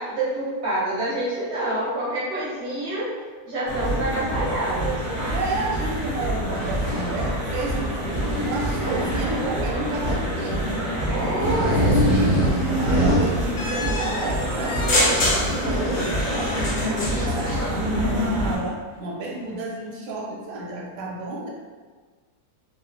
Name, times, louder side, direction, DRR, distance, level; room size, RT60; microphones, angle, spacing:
voice 1, 0.0-3.1 3.4-5.0 11.1-12.0, right 1 dB, 55° right, -7 dB, 0.8 m, -27 dB
sound 1, 3.7-18.6, equal, 15° left, 0.7 m, -27 dB
voice 2, 5.3-10.8 11.2-12.5 12.8-21.5, right 2 dB, 85° right, -2 dB, 1.2 m, -31 dB
sound 2, 6.5-7.1 8.1-9.3 10.0-10.1 11.4-13.4 15.6-16.1, equal, 80° left, 1.3 m, -23 dB
sound 3, 13.6-17.6, left 1 dB, 65° left, 0.8 m, -26 dB
2.9 x 2.0 x 2.4 m, 1.4 s
omnidirectional pair, 1.8 m